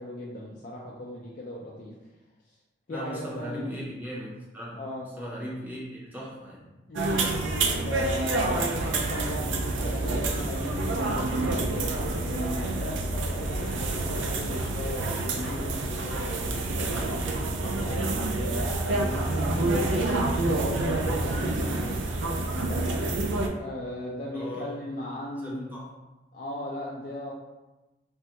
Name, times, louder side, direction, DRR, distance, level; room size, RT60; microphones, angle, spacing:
voice 1, 0.0-1.9 2.9-3.7 4.8-5.1 6.9-7.2 7.8-17.1 17.7-22.0 22.7-23.1 23.6-25.7 26.3-27.3, left 1 dB, 45° left, -5 dB, 0.3 m, -37 dB
voice 2, 2.9-4.8 5.2-6.7 24.3-24.7 25.4-25.9, equal, 10° right, -5 dB, 0.6 m, -38 dB
sound 1, 7.0-23.5, right 2 dB, 85° right, 0.4 m, -28 dB
3.4 x 2.1 x 2.8 m, 1.1 s
head